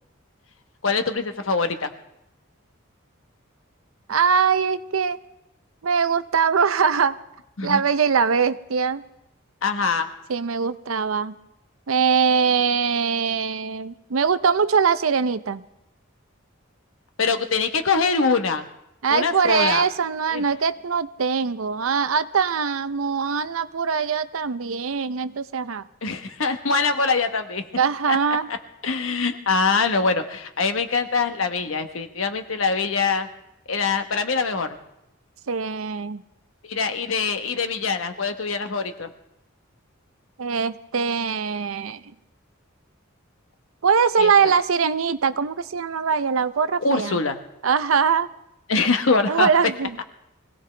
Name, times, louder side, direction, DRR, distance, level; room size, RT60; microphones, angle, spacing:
voice 1, 0.8-1.9 7.6-7.8 9.6-10.1 17.2-18.7 19.1-19.8 20.3-20.4 26.0-27.7 28.1-28.2 28.5-28.6 28.8-33.3 33.7-34.8 36.6-39.1 44.2-44.3 46.8-47.4 48.7-49.5, left 4 dB, 75° left, 7 dB, 1.1 m, -23 dB
voice 2, 4.1-5.2 5.8-7.2 7.6-9.0 10.3-11.4 11.9-15.6 19.0-25.8 27.8-28.5 35.5-36.2 40.4-42.0 43.8-47.2 47.6-48.3 49.3-50.0, right 6 dB, 85° right, 13 dB, 0.6 m, -22 dB
25.0 x 17.0 x 3.3 m, 0.85 s
head